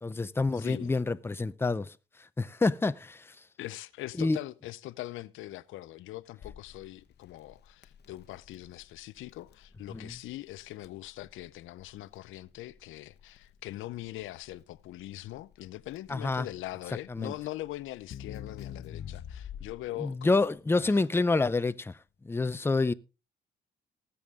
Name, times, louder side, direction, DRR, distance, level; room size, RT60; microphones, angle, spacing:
voice 1, 0.0-3.4 4.2-4.4 9.9-10.1 16.1-16.5 17.1-17.3 20.0-22.0 22.2-22.9, left 3 dB, 10° left, 0.5 m, -28 dB
voice 2, 0.5-0.9 3.6-21.0, left 16 dB, 85° left, 0.6 m, -42 dB
Crackle, 6.4-20.0, left 9 dB, 55° left, 1.0 m, -47 dB
19.0 x 7.1 x 3.6 m
cardioid pair, 90°, 20 cm